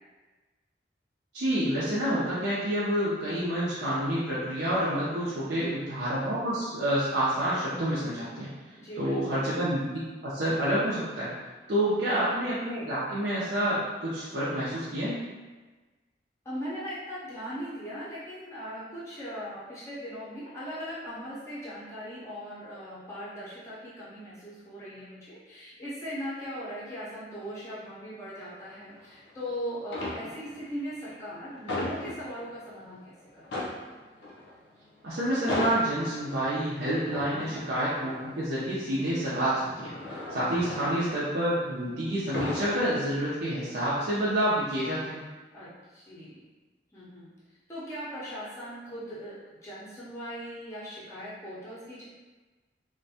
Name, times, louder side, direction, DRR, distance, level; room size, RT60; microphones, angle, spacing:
voice 1, 1.3-8.5 9.0-11.3 11.7-15.2 35.0-45.2, right 1 dB, 65° right, -10 dB, 0.5 m, -28 dB
voice 2, 5.3-5.7 8.8-9.5 11.8-12.1 16.4-33.7 37.2-37.6 40.5-41.1 45.5-46.4 46.9-47.3 47.7-52.0, equal, 15° left, -9 dB, 0.6 m, -39 dB
sound 1, 28.8-29.5 29.8-30.7 31.0-32.8 33.1-33.2 33.4-41.8 42.1-43.6 44.0-44.2, left 1 dB, 85° left, 0.5 m, -37 dB
2.5 x 2.1 x 2.7 m, 1.3 s
head